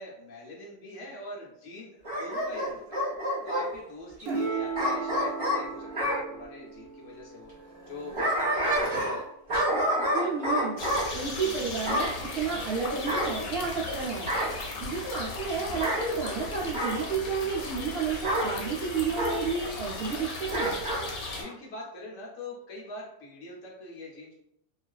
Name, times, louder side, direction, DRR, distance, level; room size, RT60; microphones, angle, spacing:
voice 1, 0.0-3.0 3.4-9.2 21.3-24.3, left 1 dB, 65° left, -4 dB, 0.9 m, -43 dB
Bark / Growling, 2.0-3.7 4.7-6.2 7.8-9.2 9.5-11.1 11.8-12.2 13.1-13.9 14.3-14.6 15.7-16.0 16.7-17.0 18.2-18.5 19.1-19.4 20.5-21.0 21.4-21.5, equal, 25° right, 0.8 m, -28 dB
sound 1, 4.2-7.9 10.4-10.9, right 5 dB, 90° right, 1.1 m, -36 dB
voice 2, 10.1-10.8 11.1-14.3 14.8-20.7, right 5 dB, 65° right, -7 dB, 0.6 m, -31 dB
sound 2, 10.8-21.4, left 3 dB, 80° left, 1.1 m, -37 dB
2.4 x 2.3 x 2.3 m, 0.80 s
omnidirectional pair, 1.6 m